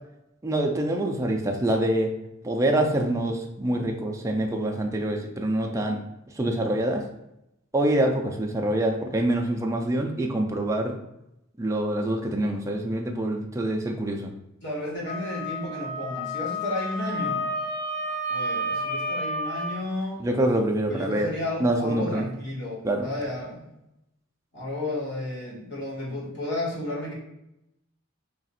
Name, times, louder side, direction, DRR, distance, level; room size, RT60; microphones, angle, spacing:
voice 1, 0.4-2.1 2.4-6.0 6.4-7.0 7.7-11.0 11.6-14.3 20.2-21.3 21.6-22.2 22.8-23.1, right 1 dB, 15° right, 1 dB, 0.4 m, -25 dB
voice 2, 14.6-17.5 18.3-20.2 20.9-23.7 24.5-27.1, left 1 dB, 60° left, -5 dB, 1.3 m, -32 dB
Wind instrument woodwind instrument, 15.0-19.8, equal, 40° left, 0.5 m, -30 dB
3.5 x 2.4 x 4.1 m, 0.86 s
head